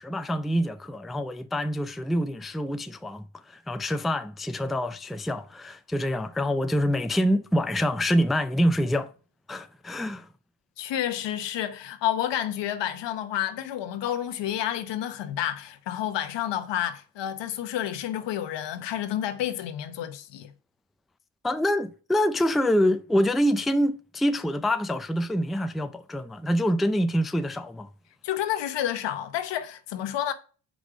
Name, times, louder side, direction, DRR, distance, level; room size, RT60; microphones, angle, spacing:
voice 1, 0.0-9.1 9.5-10.3 21.4-27.9, equal, ahead, 0.4 m, -26 dB
voice 2, 10.8-20.5 28.2-30.3, left 11 dB, 75° left, 1.0 m, -30 dB
6.2 x 5.1 x 5.0 m
supercardioid pair, 70°, 43 cm